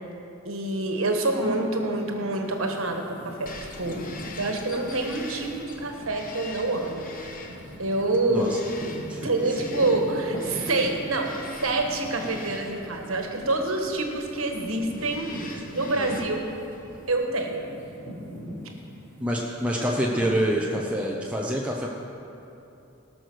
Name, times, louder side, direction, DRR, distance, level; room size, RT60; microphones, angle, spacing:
voice 1, 0.4-3.5 3.8-4.0 4.4-7.1 7.8-8.5 9.2-11.3 11.6-16.4 17.1-17.7, right 2 dB, 70° right, 3 dB, 1.4 m, -27 dB
sound 1, 1.4-16.5 16.9-20.7, equal, 15° left, 3.2 m, -41 dB
Bird vocalization bird call bird song, 3.5-17.2, left 3 dB, 40° left, 1.0 m, -44 dB
voice 2, 16.0-16.3 19.2-21.9, equal, 5° right, -3 dB, 0.7 m, -27 dB
18.0 x 6.3 x 6.2 m, 2.9 s
head